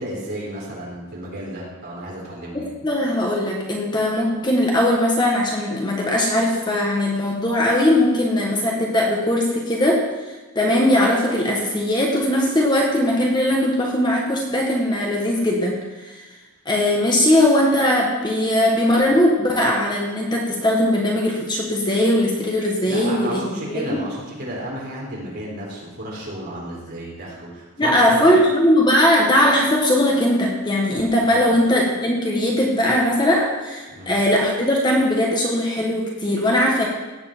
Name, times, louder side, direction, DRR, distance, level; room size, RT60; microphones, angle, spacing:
voice 1, 0.0-2.7 22.8-28.4 31.3-31.5 33.9-34.2, right 1 dB, 45° right, -4 dB, 4.3 m, -32 dB
voice 2, 2.5-10.0 10.5-15.8 16.0-16.1 16.6-23.4 23.7-24.0 27.8-36.9, left 1 dB, 20° left, -1 dB, 1.4 m, -19 dB
17.0 x 8.3 x 4.5 m, 1.2 s
head